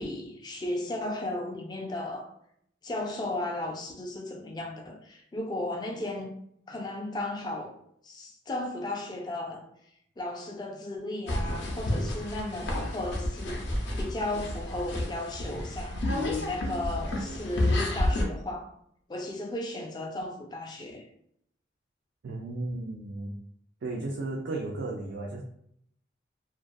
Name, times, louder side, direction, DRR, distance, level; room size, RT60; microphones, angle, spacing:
voice 1, 0.0-2.3 2.8-6.3 6.7-7.7 8.0-9.6 10.2-18.7 19.1-21.0, left 2 dB, 20° left, 0.3 m, -35 dB
sound 1, 11.3-18.2, left 1 dB, 75° left, 0.5 m, -30 dB
voice 2, 22.2-23.3 23.8-25.4, right 2 dB, 70° right, 0.4 m, -34 dB
2.3 x 2.2 x 2.5 m
head